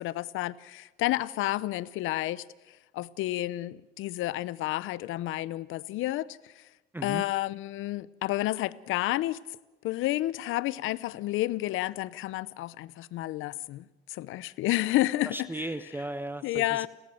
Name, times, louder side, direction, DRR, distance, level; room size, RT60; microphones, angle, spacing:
voice 1, 0.0-2.4 2.9-6.6 7.0-9.4 9.8-15.5 16.4-16.9, left 16 dB, 75° left, 0.8 m, -30 dB
voice 2, 15.3-16.9, right 1 dB, 10° right, 1.1 m, -36 dB
30.0 x 14.0 x 7.8 m
supercardioid pair, 75°, 21 cm